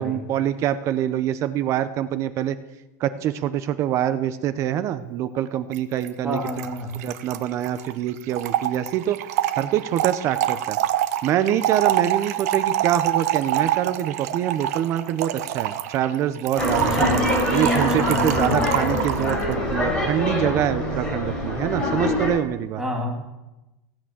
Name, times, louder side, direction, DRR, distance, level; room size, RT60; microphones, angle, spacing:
voice 1, 0.0-2.6 3.0-6.4 7.0-9.2 9.6-10.8 11.2-17.0 17.5-22.8, right 11 dB, 35° right, 13 dB, 0.7 m, -25 dB
Trickle dribble / Fill (with liquid), 5.7-5.8 6.0-6.1 6.3-19.4, right 12 dB, 70° right, 0.9 m, -26 dB
voice 2, 6.2-7.0 16.8-17.2 17.9-18.7 22.8-23.3, equal, 5° right, 0 dB, 2.5 m, -29 dB
sound 1, 16.6-22.3, left 1 dB, 10° left, 4.5 m, -24 dB
16.5 x 8.8 x 7.4 m, 1.0 s
supercardioid pair, 155°, 9 cm